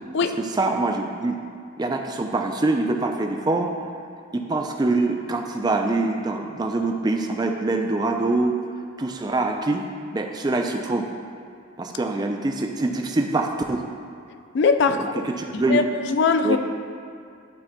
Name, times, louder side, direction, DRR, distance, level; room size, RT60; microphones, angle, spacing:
voice 1, 0.4-1.4 1.8-3.7 4.3-8.6 9.0-9.8 10.1-11.1 11.8-13.9 14.9-15.8 16.4-16.6, right 2 dB, 20° right, 3 dB, 0.3 m, -24 dB
voice 2, 14.5-15.1 15.5-15.8 16.1-16.6, left 5 dB, 55° left, 8 dB, 0.3 m, -20 dB
11.0 x 4.1 x 2.2 m, 2.3 s
head